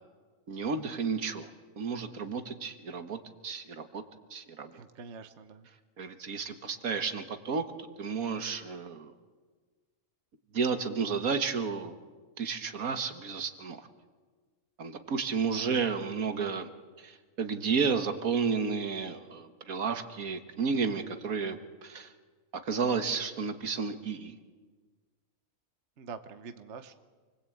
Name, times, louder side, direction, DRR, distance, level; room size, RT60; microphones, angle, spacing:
voice 1, 0.5-1.5 1.8-4.0 4.3-4.8 6.0-9.1 10.5-11.9 12.4-13.9 14.8-16.7 17.0-22.1 22.6-24.3, right 5 dB, 75° right, 8 dB, 1.9 m, -32 dB
voice 2, 4.7-5.7 26.0-26.9, right 5 dB, 55° right, 9 dB, 1.3 m, -45 dB
27.5 x 20.5 x 8.7 m, 1.4 s
omnidirectional pair, 1.5 m